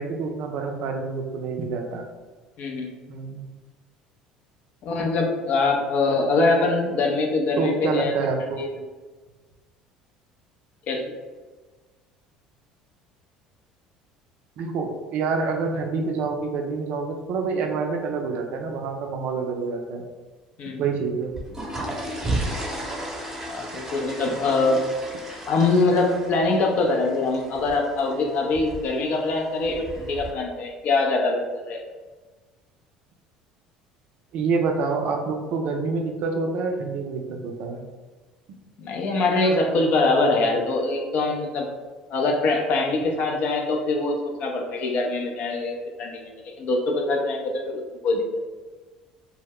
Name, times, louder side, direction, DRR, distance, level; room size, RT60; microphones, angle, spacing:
voice 1, 0.0-2.1 3.1-3.4 6.8-6.9 7.6-8.7 14.6-20.0 20.8-21.3 34.3-37.8 39.4-39.5, right 4 dB, 60° right, 3 dB, 0.4 m, -27 dB
voice 2, 2.6-2.9 4.8-8.1 8.6-8.7 10.9-11.0 20.6-20.8 23.4-24.8 25.5-31.8 38.8-41.7 42.1-44.1 44.4-46.3 46.6-48.2, left 3 dB, 55° left, 1 dB, 0.5 m, -23 dB
sound 1, 21.2-30.3, right 1 dB, 15° right, 0.8 m, -34 dB
2.1 x 2.0 x 3.5 m, 1.3 s
hypercardioid pair, 65°, 3 cm